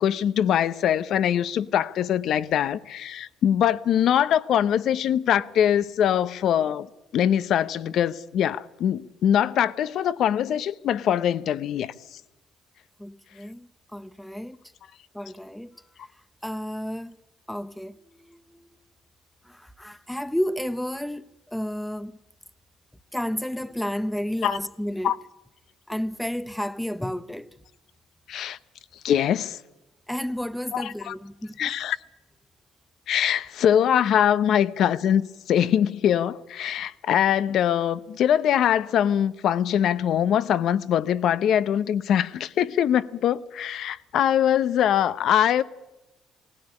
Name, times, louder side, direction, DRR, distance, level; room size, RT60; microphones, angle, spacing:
voice 1, 0.0-6.9 7.1-12.2 24.4-24.6 25.0-25.2 28.3-28.6 29.0-29.6 30.7-31.1 31.6-32.0 33.1-45.6, left 9 dB, 65° left, 0.8 m, -23 dB
voice 2, 13.0-14.6 15.1-15.8 16.4-17.2 17.5-18.8 19.4-22.2 23.1-25.2 25.9-27.5 30.1-31.7, equal, 5° left, 0.8 m, -32 dB
19.0 x 16.5 x 9.9 m
cardioid pair, 95°, 0 cm